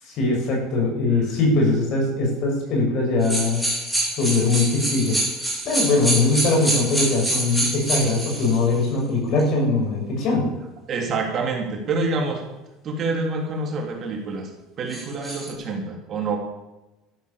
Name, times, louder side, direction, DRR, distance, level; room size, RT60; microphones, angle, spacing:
voice 1, 0.1-3.6 4.2-5.2 5.6-10.5, left 3 dB, 45° left, 0 dB, 6.8 m, -21 dB
sound 1, 3.2-8.6 9.4-9.5 14.9-15.5, right 1 dB, ahead, 4.7 m, -26 dB
voice 2, 10.9-12.4 12.8-14.5 14.8-16.4, right 3 dB, 35° right, 2 dB, 3.2 m, -27 dB
13.5 x 12.0 x 7.2 m, 1.0 s
cardioid pair, 150°, 0 cm